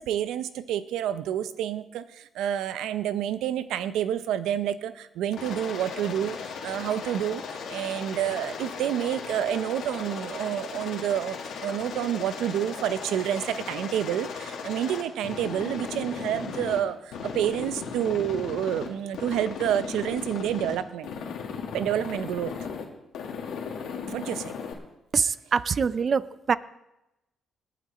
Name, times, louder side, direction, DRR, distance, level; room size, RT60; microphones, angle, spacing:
voice 1, 0.0-21.1 21.7-22.5 24.1-24.5, right 10 dB, 85° right, 13 dB, 0.7 m, -29 dB
Aircraft, 5.3-16.8 17.1-18.9 19.1-20.8 21.0-22.8 23.1-24.7, left 6 dB, 80° left, 2.2 m, -36 dB
voice 2, 25.1-26.6, right 6 dB, 45° right, 17 dB, 0.5 m, -24 dB
20.0 x 8.4 x 4.3 m, 0.91 s
cardioid pair, 90°, 0 cm